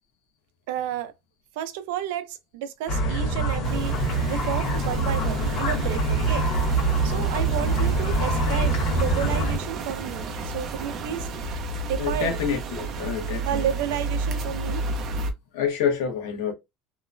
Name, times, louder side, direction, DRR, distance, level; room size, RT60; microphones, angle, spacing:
voice 1, 0.7-1.1 1.6-6.8 7.0-12.4 13.4-14.8, right 10 dB, 85° right, 0.4 m, -32 dB
sound 1, 2.9-9.6, right 2 dB, 45° left, 1.2 m, -24 dB
sound 2, 3.6-15.3, right 3 dB, 35° right, 0.5 m, -32 dB
voice 2, 12.0-13.7 15.5-16.5, left 7 dB, 80° left, 1.0 m, -27 dB
2.9 x 2.1 x 2.5 m
cardioid pair, 170°, 0 cm